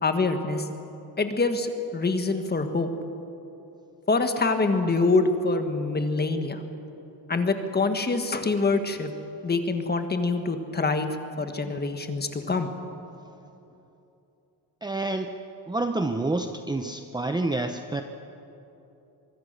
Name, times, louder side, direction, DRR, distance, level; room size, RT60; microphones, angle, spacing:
voice 1, 0.0-0.7 1.2-2.9 4.1-6.6 7.3-9.1 9.4-12.7, left 3 dB, 25° left, 7 dB, 1.6 m, -25 dB
voice 2, 14.8-15.3 15.7-18.0, right 2 dB, 10° right, 6 dB, 0.7 m, -28 dB
24.5 x 22.0 x 6.7 m, 2.9 s
cardioid pair, 155°, 40 cm